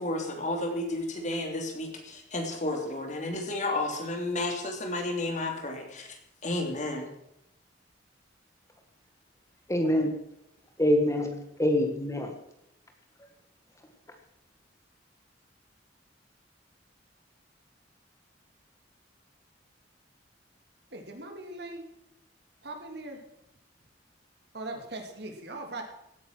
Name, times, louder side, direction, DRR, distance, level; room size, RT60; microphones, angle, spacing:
voice 1, 0.0-6.2 6.4-7.1, left 2 dB, 40° left, 4 dB, 3.1 m, -32 dB
voice 2, 9.7-10.2 10.8-12.3, left 1 dB, 15° left, 4 dB, 1.5 m, -25 dB
voice 3, 20.9-21.9 22.6-23.2 24.5-25.8, right 2 dB, 60° right, 3 dB, 3.0 m, -40 dB
17.0 x 9.5 x 6.1 m, 0.81 s
head